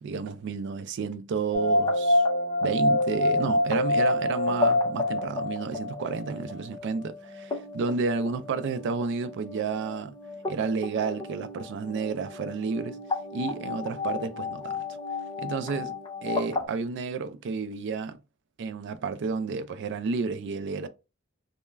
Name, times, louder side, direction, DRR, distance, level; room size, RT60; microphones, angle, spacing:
voice 1, 0.0-2.2 2.6-10.1 10.5-13.0 13.3-14.8 15.4-15.9 16.2-18.2 18.6-20.9, right 5 dB, 55° right, 0.3 m, -31 dB
sound 1, 1.5-16.7, left 2 dB, 20° left, 0.5 m, -29 dB
2.2 x 2.1 x 3.2 m
head